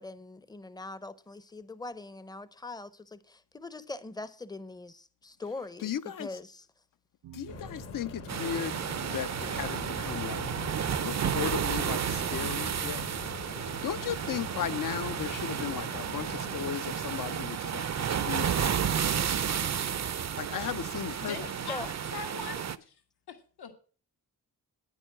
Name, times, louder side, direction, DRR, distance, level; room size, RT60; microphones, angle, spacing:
voice 1, 0.0-6.7 21.7-21.9, left 2 dB, 10° left, 0.6 m, -42 dB
voice 2, 5.8-6.3 7.3-8.8 9.0-10.4 11.0-13.0 13.6-18.9 20.4-21.4, left 9 dB, 60° left, 0.5 m, -36 dB
sound 1, 7.2-19.8, right 11 dB, 85° right, 0.7 m, -51 dB
Waves surf, 7.5-17.1, left 4 dB, 40° left, 0.9 m, -43 dB
sound 2, 8.3-22.8, right 8 dB, 45° right, 0.5 m, -32 dB
voice 3, 21.2-22.9 23.3-23.7, left 5 dB, 75° left, 1.5 m, -41 dB
9.8 x 9.1 x 5.9 m
wide cardioid pair, 145°, 38 cm